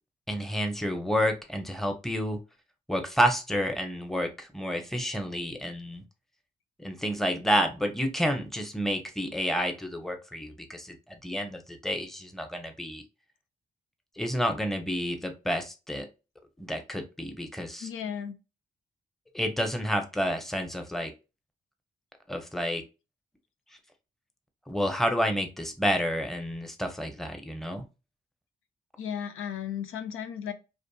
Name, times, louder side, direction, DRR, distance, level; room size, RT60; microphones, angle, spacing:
voice 1, 0.3-2.4 2.9-6.0 6.8-13.0 14.2-16.1 16.6-17.9 19.3-21.1 22.3-22.8 24.7-27.8, equal, ahead, 0.7 m, -30 dB
voice 2, 17.8-18.3 29.0-30.5, left 8 dB, 80° left, 0.4 m, -35 dB
2.5 x 2.5 x 2.3 m
supercardioid pair, 50°, 21 cm